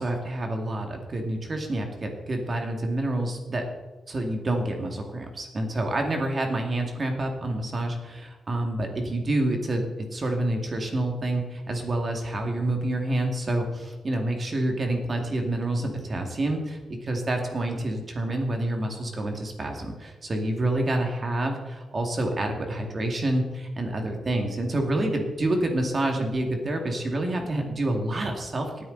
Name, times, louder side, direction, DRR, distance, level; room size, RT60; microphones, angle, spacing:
voice 1, 0.0-3.6 4.1-28.8, right 1 dB, 40° right, 3 dB, 2.5 m, -28 dB
18.0 x 9.4 x 4.1 m, 1.2 s
cardioid pair, 85°, 0 cm